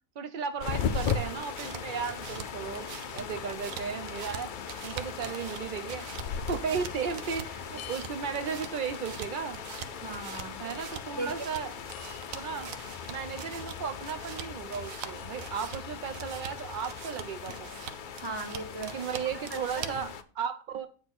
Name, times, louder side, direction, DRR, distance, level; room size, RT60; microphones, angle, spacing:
voice 1, 0.2-4.5 4.8-6.1 6.5-9.6 10.6-12.0 12.3-12.7 13.1-17.7 18.8-20.9, right 6 dB, 90° right, 9 dB, 0.4 m, -35 dB
sound 1, 0.5-20.1, right 9 dB, 70° right, 1.0 m, -45 dB
sound 2, 0.6-20.2, left 7 dB, 80° left, 0.4 m, -38 dB
sound 3, 6.1-7.4 7.6-8.5 9.1-9.2 10.0-10.1 10.3-10.9 11.4-11.5 11.7-12.8 13.3-13.6 15.0-16.7 19.1-20.1, left 7 dB, 60° left, 0.9 m, -45 dB
voice 2, 10.0-10.6 11.2-11.3 17.1-17.2 18.2-19.0 19.3-20.1, right 2 dB, 20° right, 4 dB, 1.1 m, -38 dB
8.8 x 3.7 x 5.9 m, 0.39 s
omnidirectional pair, 1.6 m